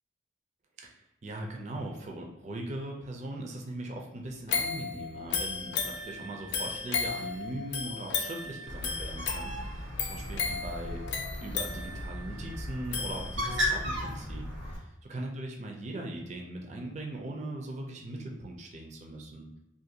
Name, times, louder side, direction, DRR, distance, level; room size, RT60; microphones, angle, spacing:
voice 1, 1.2-11.0 11.4-19.5, right 1 dB, 35° right, 1 dB, 0.4 m, -40 dB
sound 1, 4.5-13.7 14.2-14.3, left 5 dB, 65° left, 0.4 m, -35 dB
Bird, 8.7-14.8, left 1 dB, 85° right, 0.9 m, -36 dB
2.5 x 2.2 x 2.7 m, 0.95 s
head